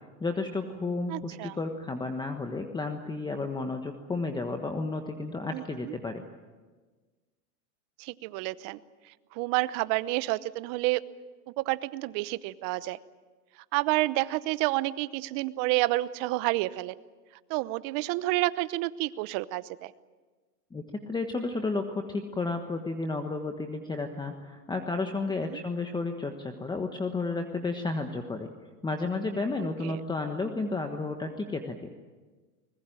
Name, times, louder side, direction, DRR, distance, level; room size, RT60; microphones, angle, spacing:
voice 1, 0.2-6.2 20.7-28.5 28.8-31.7, left 3 dB, 10° left, 5 dB, 1.3 m, -32 dB
voice 2, 1.1-1.6 5.5-5.9 8.0-8.8 9.3-11.0 11.5-13.0 13.7-16.9 17.5-19.9 25.4-25.6 29.8-30.0, right 19 dB, 40° right, 16 dB, 0.9 m, -29 dB
23.0 x 20.5 x 9.1 m, 1.4 s
hypercardioid pair, 125°, 47 cm